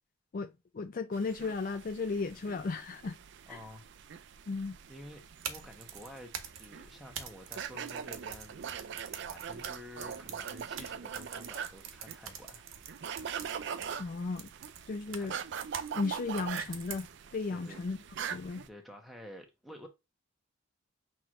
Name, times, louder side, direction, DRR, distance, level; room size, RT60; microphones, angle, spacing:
voice 1, 0.3-3.2 3.5-3.6 4.5-4.8 14.0-14.5 14.9-15.4 15.9-18.0 18.3-18.7, left 4 dB, 40° left, 0.4 m, -35 dB
sound 1, 1.1-18.7, right 7 dB, 60° right, 0.4 m, -42 dB
voice 2, 3.5-4.1 4.9-8.7 9.3-12.7 15.1-15.3 17.5-17.8 18.7-19.9, left 1 dB, ahead, 1.0 m, -50 dB
sound 2, 5.2-15.9 16.4-17.4, right 8 dB, 85° right, 0.8 m, -45 dB
6.0 x 3.0 x 2.4 m
head